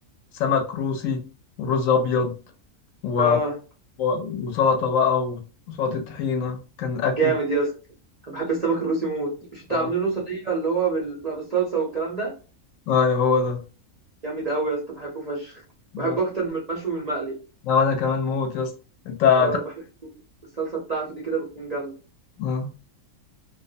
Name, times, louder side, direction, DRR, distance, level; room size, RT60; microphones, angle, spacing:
voice 1, 0.3-1.2 1.6-2.3 3.0-3.4 4.0-5.4 5.7-7.3 9.7-9.9 12.9-13.6 15.9-16.2 17.6-18.7 19.1-19.6 22.4-22.7, left 6 dB, 70° left, 5 dB, 0.9 m, -23 dB
voice 2, 3.2-3.5 7.2-7.7 8.3-12.3 14.2-15.6 16.0-17.4 19.4-19.6 20.0-20.1 20.5-21.9, right 4 dB, 55° right, -4 dB, 0.4 m, -26 dB
2.4 x 2.0 x 2.6 m, 0.35 s
omnidirectional pair, 1.5 m